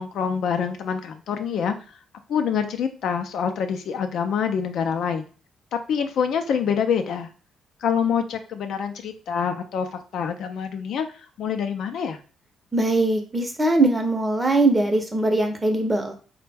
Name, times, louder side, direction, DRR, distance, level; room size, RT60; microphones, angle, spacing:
voice 1, 0.0-1.8 2.3-5.3 5.7-7.3 7.8-12.2, left 7 dB, 70° left, 7 dB, 0.4 m, -26 dB
voice 2, 12.7-16.1, right 2 dB, 15° right, 4 dB, 0.6 m, -21 dB
3.2 x 2.1 x 3.3 m, 0.36 s
cardioid pair, 90°, 0 cm